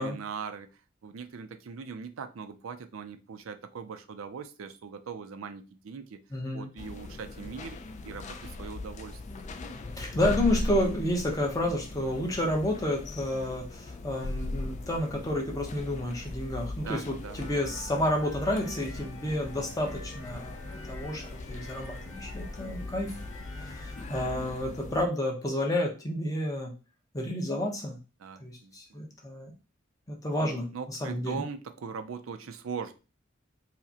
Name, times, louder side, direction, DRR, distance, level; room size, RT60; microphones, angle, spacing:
voice 1, 0.0-6.2 6.5-7.8 8.0-9.4 12.1-12.3 16.8-17.4 28.2-29.0 30.4-32.9, right 6 dB, 80° right, 9 dB, 0.4 m, -40 dB
voice 2, 6.3-6.7 10.0-23.2 23.5-26.7 27.1-28.0 28.4-29.5 30.1-31.4, left 1 dB, 15° left, 1 dB, 0.8 m, -30 dB
sound 1, 6.8-25.1, left 2 dB, 35° left, 0.3 m, -39 dB
sound 2, 17.4-24.0, left 2 dB, 65° left, 1.2 m, -49 dB
4.7 x 2.1 x 2.8 m, 0.32 s
head